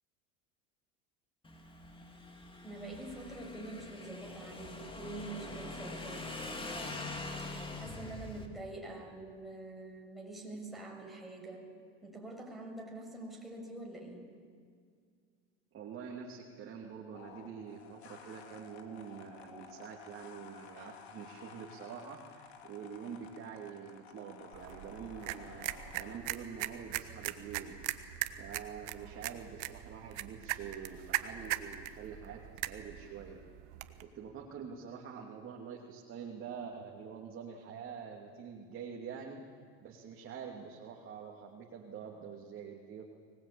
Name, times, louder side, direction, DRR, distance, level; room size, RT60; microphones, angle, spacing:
Motorcycle / Engine, 1.4-8.5, left 2 dB, 15° left, 2.9 m, -44 dB
voice 1, 2.6-7.3 7.8-11.7 12.0-14.3, right 2 dB, ahead, -1 dB, 6.5 m, -46 dB
voice 2, 15.7-27.7 28.4-33.4 34.0-39.4 39.8-43.0, right 7 dB, 40° right, 0 dB, 2.8 m, -46 dB
sound 1, 17.1-26.2, left 7 dB, 85° left, 2.7 m, -53 dB
sound 2, 24.5-34.0, right 15 dB, 65° right, 1.4 m, -40 dB
24.5 x 19.5 x 8.7 m, 2.1 s
supercardioid pair, 95°, 31 cm